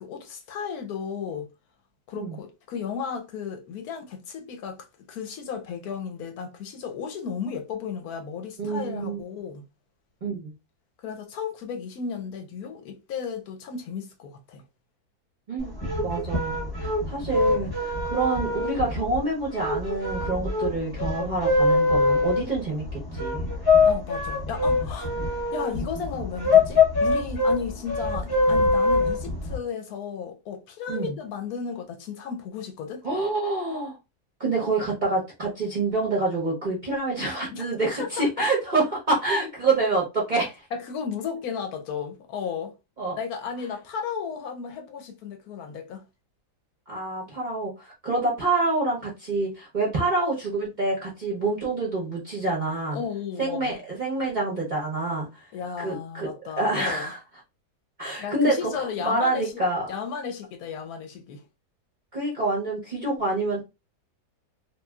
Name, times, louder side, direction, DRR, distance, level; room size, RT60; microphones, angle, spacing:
voice 1, 0.0-1.5 2.1-9.6 11.0-14.6 23.9-25.1 25.5-33.0 37.5-37.6 38.0-38.2 40.7-42.7 43.2-46.0 52.9-53.8 55.5-57.1 58.2-61.4, left 6 dB, 70° left, 1.0 m, -34 dB
voice 2, 8.6-9.2 10.2-10.5 15.5-15.7 16.0-23.4 30.9-31.1 33.0-34.0 34.4-40.7 43.0-43.2 46.9-53.0 53.4-55.5 55.8-56.3 56.6-57.2 58.0-59.8 62.1-63.6, right 2 dB, 45° right, 0.6 m, -27 dB
sound 1, 15.6-29.6, left 3 dB, 20° left, 0.7 m, -24 dB
3.0 x 2.6 x 2.2 m
omnidirectional pair, 1.8 m